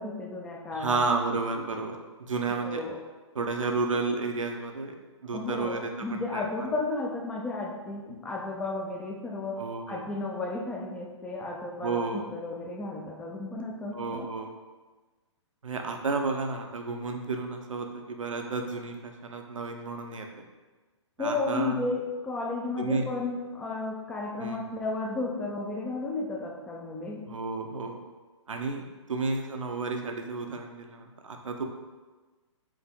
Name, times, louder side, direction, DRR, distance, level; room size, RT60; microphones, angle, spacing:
voice 1, 0.0-1.0 2.6-3.0 5.3-14.3 21.2-27.3, left 3 dB, 5° left, 1 dB, 0.3 m, -33 dB
voice 2, 0.7-2.8 3.3-5.0 5.2-6.4 9.6-10.0 11.8-12.3 13.9-14.5 15.6-20.3 21.2-21.8 22.8-23.0 24.4-24.6 27.3-28.0 28.5-31.6, right 3 dB, 80° right, 4 dB, 0.6 m, -32 dB
4.8 x 2.6 x 3.6 m, 1.3 s
hypercardioid pair, 130°, 16 cm